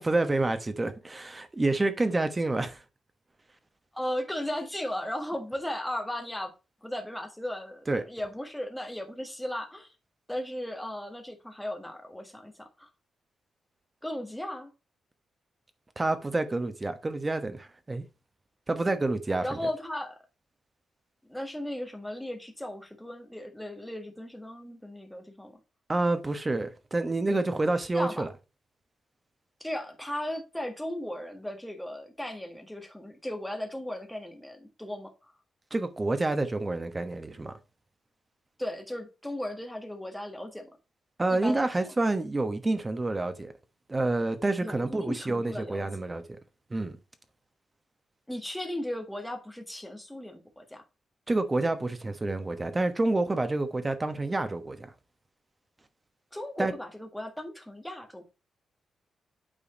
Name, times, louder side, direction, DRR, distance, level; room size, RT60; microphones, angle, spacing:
voice 1, 0.0-2.8 7.9-8.0 16.0-18.0 18.7-19.6 25.9-28.3 35.7-37.5 41.2-43.5 43.9-46.2 46.7-47.0 51.3-54.9 56.6-56.7, right 2 dB, 15° right, 1.1 m, -28 dB
voice 2, 3.9-6.5 6.8-9.9 10.3-12.9 14.0-14.7 19.4-20.2 21.3-25.6 27.9-28.3 29.6-35.3 38.6-40.7 41.3-41.9 44.6-45.9 48.3-50.8 56.3-58.3, left 1 dB, 5° left, 1.7 m, -36 dB
8.8 x 4.7 x 4.2 m
wide cardioid pair, 170°, 0 cm